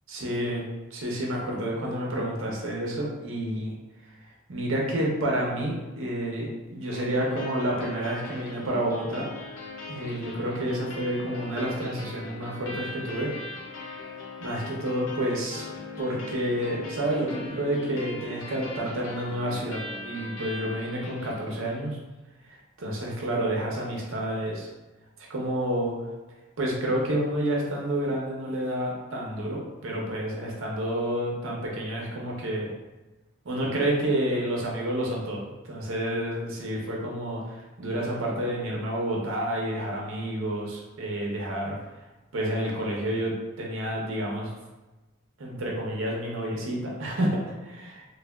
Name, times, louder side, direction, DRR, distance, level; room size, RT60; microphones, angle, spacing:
voice 1, 0.1-0.6 0.9-3.7 4.5-9.3 9.9-13.3 14.4-15.7 16.0-21.9 22.5-24.7 25.3-25.9 26.6-32.7 33.4-41.8 42.3-44.5 45.4-48.0, right 1 dB, 75° right, -2 dB, 0.7 m, -29 dB
sound 1, 6.9-21.9, left 2 dB, 75° left, 0.6 m, -40 dB
3.2 x 2.1 x 2.2 m, 1.1 s
head